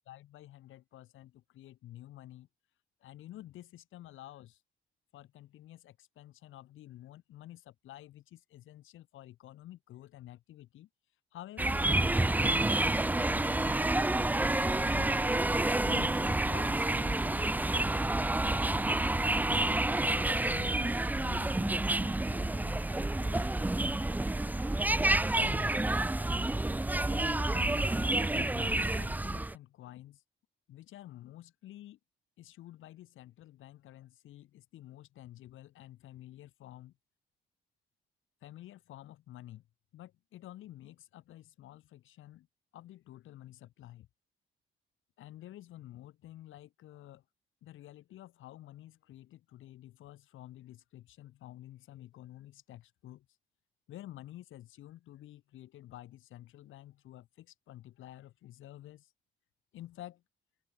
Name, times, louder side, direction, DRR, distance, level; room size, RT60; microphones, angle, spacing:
voice 1, 0.0-2.5 3.0-4.6 5.1-10.9 11.3-13.9 14.7-18.9 20.5-23.5 25.0-25.7 27.1-30.2 30.7-32.0 32.4-37.0 38.4-39.6 39.9-42.5 42.7-44.1 45.2-47.2 47.6-53.3 53.9-59.1 59.7-60.2, left 14 dB, 80° left, 4.9 m, -51 dB
sound 1, 11.6-29.5, right 2 dB, 10° right, 0.6 m, -29 dB
open air
cardioid pair, 90°, 20 cm